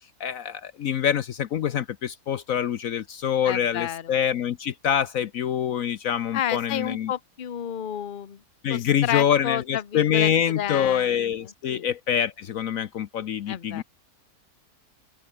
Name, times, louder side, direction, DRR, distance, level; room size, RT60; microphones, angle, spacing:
voice 1, 0.2-7.1 8.6-13.8, left 9 dB, 65° left, 1.1 m, -25 dB
voice 2, 3.4-4.1 6.3-8.4 8.7-11.2 11.7-11.8 13.5-13.8, left 10 dB, 40° left, 1.0 m, -31 dB
open air
omnidirectional pair, 1.7 m